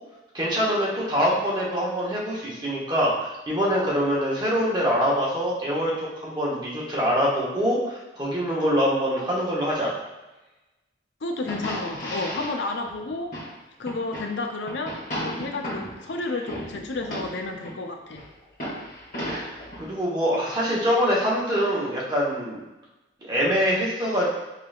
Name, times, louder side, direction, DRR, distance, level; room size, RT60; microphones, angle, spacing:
voice 1, 0.3-9.9 19.3-19.5 19.8-22.6 23.2-24.3, equal, 25° right, -6 dB, 1.0 m, -24 dB
voice 2, 11.2-13.3 13.8-18.2, left 3 dB, 85° left, 3 dB, 0.5 m, -31 dB
sound 1, 11.5-13.5 13.9-14.3 14.7-17.8 18.1-19.9, equal, 45° left, 1.3 m, -34 dB
4.7 x 3.2 x 2.4 m, 1.0 s
head